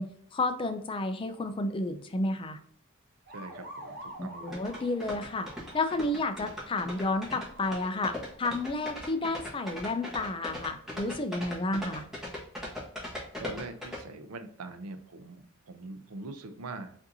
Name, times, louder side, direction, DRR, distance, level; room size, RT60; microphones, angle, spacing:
voice 1, 0.0-2.6 4.2-5.5 5.7-12.0, left 2 dB, 25° left, 8 dB, 0.4 m, -31 dB
sound 1, 3.3-10.2, right 1 dB, 45° right, 1.1 m, -49 dB
voice 2, 3.3-4.6 13.4-16.9, right 3 dB, 90° right, 9 dB, 0.6 m, -43 dB
sound 2, 4.5-14.0, left 1 dB, ahead, 1.2 m, -38 dB
5.1 x 2.7 x 2.7 m, 0.64 s
head